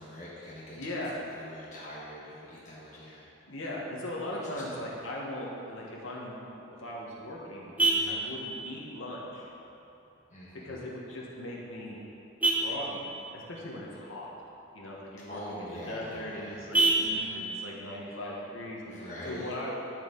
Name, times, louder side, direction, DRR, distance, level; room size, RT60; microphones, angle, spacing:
voice 1, 0.0-0.9 1.1-3.2 4.3-4.9 7.9-8.2 10.3-10.8 15.2-16.7 17.0-17.4 18.8-19.5, equal, 35° left, -7 dB, 1.4 m, -44 dB
voice 2, 0.8-1.2 3.5-7.8 8.1-9.5 10.6-12.0 12.5-14.3 14.7-19.7, left 1 dB, 80° left, -4 dB, 1.6 m, -39 dB
Vehicle horn car horn honking, 6.5-19.5, right 2 dB, 5° right, 0.7 m, -34 dB
13.5 x 4.9 x 4.0 m, 2.9 s
head